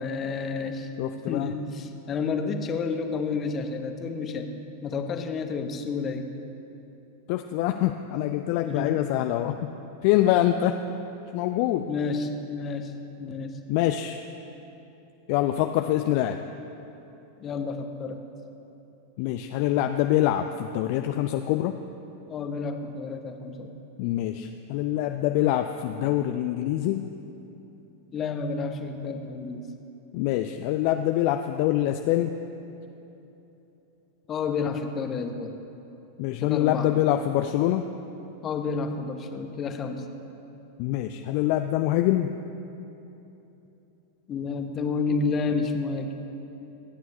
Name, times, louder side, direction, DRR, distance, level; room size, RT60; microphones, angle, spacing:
voice 1, 0.0-0.9 1.3-4.5 4.8-6.3 8.6-9.0 11.9-12.9 13.2-13.6 17.4-18.2 22.3-23.7 28.1-29.6 34.3-35.6 36.4-36.9 38.4-40.0 44.3-46.2, left 4 dB, 25° left, 6 dB, 0.9 m, -30 dB
voice 2, 1.0-1.5 7.3-9.6 10.0-10.8 11.3-11.9 13.7-14.2 15.3-16.4 19.2-21.8 24.0-27.1 30.1-32.4 36.2-37.9 40.8-42.3, left 13 dB, 45° left, 7 dB, 0.4 m, -25 dB
25.5 x 9.2 x 2.8 m, 3.0 s
figure-of-eight pair, 90°, 0 cm